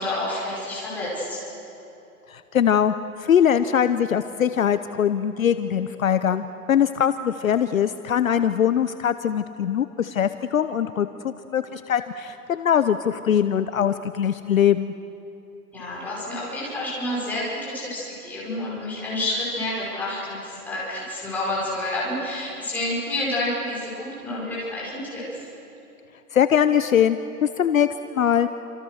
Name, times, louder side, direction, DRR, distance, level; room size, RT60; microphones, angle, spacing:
voice 1, 0.0-1.4 15.7-25.4, left 1 dB, 5° left, -8 dB, 5.2 m, -29 dB
voice 2, 2.3-14.9 26.3-28.5, left 9 dB, 60° left, 11 dB, 0.9 m, -22 dB
29.0 x 27.0 x 6.5 m, 3.0 s
hypercardioid pair, 175°, 46 cm